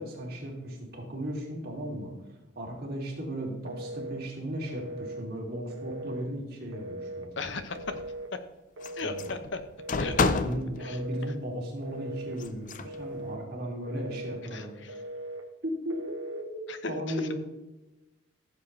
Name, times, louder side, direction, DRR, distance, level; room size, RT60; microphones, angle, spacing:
voice 1, 0.0-7.5 9.0-9.3 10.1-14.9 15.6-17.3, equal, 50° right, -1 dB, 2.7 m, -36 dB
Telephone, 3.7-4.2 4.7-5.3 5.7-6.3 6.7-7.3 7.7-8.3 8.8-9.3 9.8-10.4 10.8-11.4 11.8-12.4 12.8-13.4 13.8-14.4 14.9-15.5 15.9-16.5, right 1 dB, 75° right, 1.1 m, -40 dB
voice 2, 7.4-7.8 9.0-9.6 10.0-10.4 10.8-11.0 14.5-14.7 16.7-17.3, left 4 dB, 65° left, 9 dB, 0.8 m, -36 dB
sound 1, 7.5-8.1 8.8-10.8 12.4-12.9, left 3 dB, 40° left, 0.5 m, -30 dB
15.5 x 7.4 x 3.2 m, 1.0 s
head